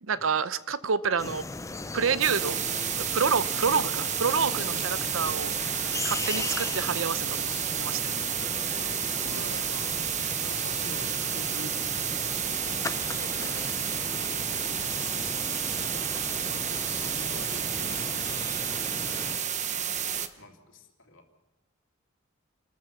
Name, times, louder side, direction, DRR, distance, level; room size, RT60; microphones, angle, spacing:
voice 1, 0.0-1.4 1.9-2.6 3.0-5.5 6.0-7.5 7.8-8.1, right 5 dB, 75° right, 15 dB, 0.8 m, -28 dB
sound 1, 1.2-19.4, left 3 dB, 15° left, 0.6 m, -38 dB
sound 2, 1.6-9.9, left 2 dB, 90° left, 1.6 m, -48 dB
sound 3, 2.2-20.3, right 9 dB, 35° right, 1.0 m, -31 dB
voice 2, 8.4-15.1 15.5-16.7 16.9-20.0 20.4-21.3, left 1 dB, 70° left, 3 dB, 2.9 m, -48 dB
28.5 x 13.5 x 7.2 m, 1.1 s
head